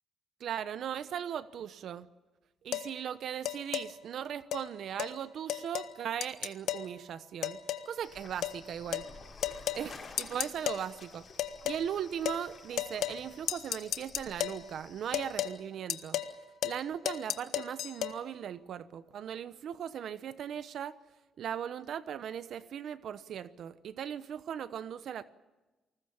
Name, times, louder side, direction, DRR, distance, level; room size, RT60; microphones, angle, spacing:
voice 1, 0.4-2.1 2.6-7.6 7.9-9.0 9.8-11.3 11.6-16.2 16.6-20.9 21.4-25.2, right 9 dB, 65° right, 14 dB, 1.0 m, -38 dB
sound 1, 2.7-2.9 3.5-3.9 4.5-4.7 5.0-5.1 5.5-5.9 6.2-6.9 7.4-7.9 8.4-8.6 8.9-9.1 9.4-9.8 10.2-10.8 11.4-11.8 12.3-12.4 12.8-13.2 13.5-14.6 15.1-15.6 15.9-16.3 16.6-16.8 17.1-18.2, left 11 dB, 80° left, 1.4 m, -33 dB
sound 2, 8.0-15.5, left 4 dB, 45° left, 5.4 m, -52 dB
28.5 x 20.0 x 7.2 m, 1.1 s
cardioid pair, 90°, 0 cm